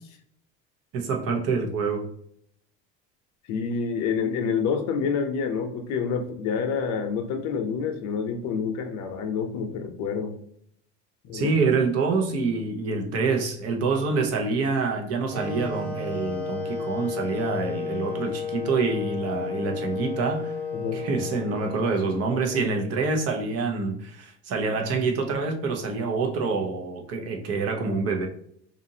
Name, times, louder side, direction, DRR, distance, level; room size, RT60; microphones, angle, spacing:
voice 1, 0.9-2.1 11.3-20.6 20.9-28.3, right 4 dB, 50° right, 2 dB, 0.8 m, -26 dB
voice 2, 3.5-10.3 11.2-11.5 20.7-21.0, left 6 dB, 55° left, 5 dB, 0.7 m, -28 dB
Wind instrument woodwind instrument, 15.3-23.3, left 5 dB, 5° left, 0.7 m, -33 dB
2.7 x 2.5 x 2.7 m, 0.66 s
supercardioid pair, 105°, 32 cm